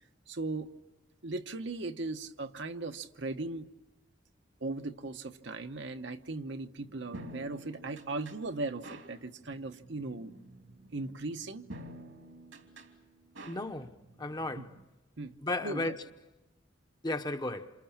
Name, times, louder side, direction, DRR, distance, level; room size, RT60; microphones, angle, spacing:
voice 1, 0.3-0.7 1.2-3.7 4.6-10.3 10.9-11.7 14.5-14.7 15.2-15.3 15.6-16.0, right 2 dB, 65° right, 1.0 m, -38 dB
sound 1, 6.8-14.9, right 1 dB, 85° right, 2.9 m, -50 dB
voice 2, 13.5-14.7 15.4-16.0 17.0-17.7, left 2 dB, 20° left, 1.0 m, -34 dB
28.0 x 26.5 x 7.3 m
head